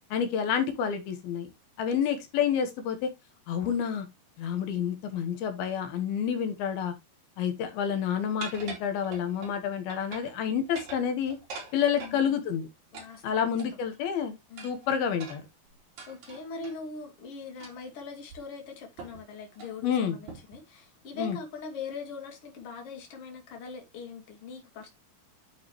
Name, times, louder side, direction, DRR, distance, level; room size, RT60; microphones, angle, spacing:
voice 1, 0.1-1.5 1.8-3.1 3.5-4.1 4.4-6.9 7.4-11.4 11.7-12.7 13.2-14.4 14.6-15.4 19.8-20.2 21.2-21.4, left 8 dB, 85° left, 3.1 m, -29 dB
sound 1, 8.4-9.6 9.9-10.4 10.6-12.2 12.9-13.9 14.6-16.8 17.6-17.9 18.3-18.4 19.0-19.2 19.5-19.8 20.3-20.6, right 4 dB, 55° right, 4.2 m, -44 dB
voice 2, 12.0-12.4 12.9-13.8 14.5-14.7 16.1-24.9, left 4 dB, 45° left, 2.9 m, -42 dB
10.5 x 5.7 x 2.9 m
omnidirectional pair, 4.3 m